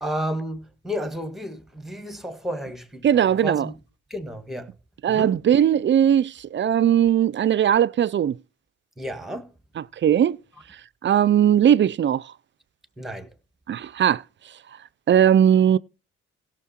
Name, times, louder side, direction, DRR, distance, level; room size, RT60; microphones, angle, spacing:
voice 1, 0.0-3.7 4.1-4.7 5.1-5.3 9.0-9.5 13.0-13.3, equal, ahead, 1.6 m, -32 dB
voice 2, 3.0-3.7 5.0-8.4 9.8-10.4 11.0-12.2 13.7-14.2 15.1-15.8, right 9 dB, 40° right, 0.4 m, -19 dB
16.5 x 6.6 x 4.3 m
cardioid pair, 90°, 30 cm